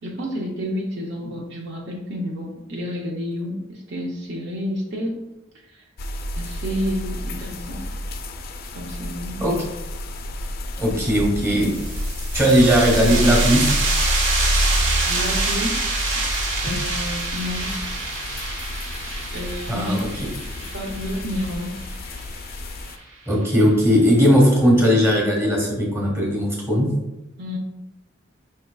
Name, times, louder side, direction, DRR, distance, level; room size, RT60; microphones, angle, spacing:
voice 1, 0.0-5.3 5.7-5.8 6.3-7.8 8.7-9.5 10.9-11.3 15.0-16.1 16.6-17.7 19.3-20.1 20.7-21.8 27.4-27.6, equal, 60° right, -1 dB, 0.6 m, -30 dB
sound 1, 6.0-23.0, left 1 dB, 50° left, 0.4 m, -29 dB
voice 2, 10.8-11.7 12.3-13.7 19.7-20.1 23.3-26.9, equal, 15° right, -2 dB, 1.1 m, -18 dB
sound 2, 11.6-22.9, right 3 dB, 90° right, 1.0 m, -27 dB
5.3 x 3.7 x 2.3 m, 0.95 s
head